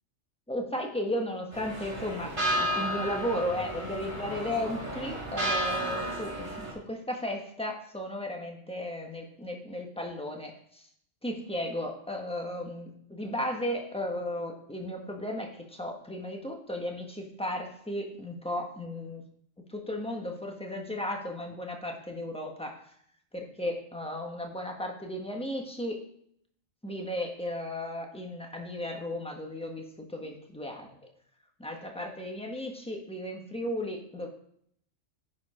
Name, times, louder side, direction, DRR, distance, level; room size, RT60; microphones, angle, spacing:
voice 1, 0.5-10.9 11.2-19.2 19.7-22.8 23.3-26.0 26.8-30.9 31.6-34.3, left 1 dB, 5° left, 2 dB, 1.2 m, -35 dB
sound 1, 1.5-6.7, equal, 25° right, 4.3 m, -32 dB
10.5 x 4.9 x 4.9 m, 0.68 s
omnidirectional pair, 1.3 m